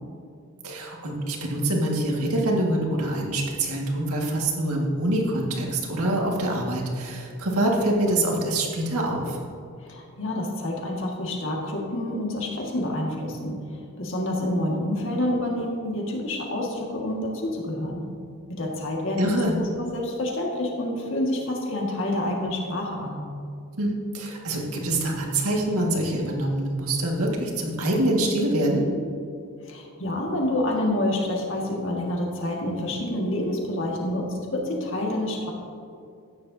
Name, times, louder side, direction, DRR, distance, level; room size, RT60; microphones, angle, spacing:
voice 1, 0.6-9.4 19.2-19.6 23.8-28.9, right 1 dB, 80° right, -1 dB, 1.9 m, -25 dB
voice 2, 9.8-18.1 18.5-23.3 29.6-35.5, left 1 dB, 60° left, -1 dB, 1.9 m, -28 dB
14.5 x 9.7 x 2.8 m, 2.4 s
head